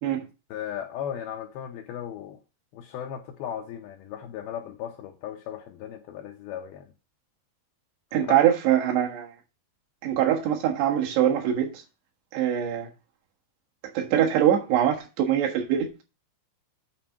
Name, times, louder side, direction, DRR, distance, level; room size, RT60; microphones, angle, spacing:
voice 1, 0.5-2.4 2.7-6.9 8.1-8.4, left 9 dB, 80° left, 2.4 m, -36 dB
voice 2, 8.1-9.3 10.0-11.8 12.3-12.9 14.0-15.9, right 10 dB, 75° right, 3.5 m, -23 dB
8.8 x 4.3 x 5.7 m
omnidirectional pair, 5.0 m